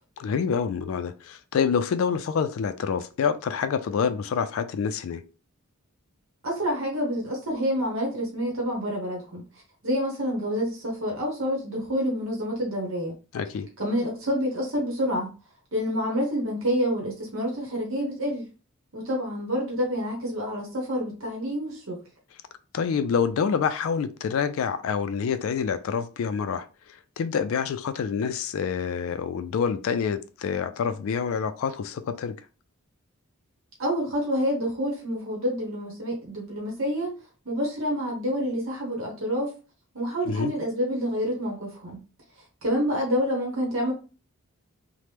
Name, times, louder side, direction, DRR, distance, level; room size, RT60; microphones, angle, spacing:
voice 1, 0.2-5.2 13.3-13.7 22.7-26.7 27.2-32.4 40.3-40.5, left 6 dB, 65° left, 0.3 m, -27 dB
voice 2, 6.4-9.5 9.8-13.1 13.8-15.3 15.7-18.5 18.9-22.0 33.8-37.1 37.4-39.5 39.9-42.0 42.6-43.9, equal, 60° right, 0.9 m, -28 dB
2.9 x 2.1 x 3.2 m
head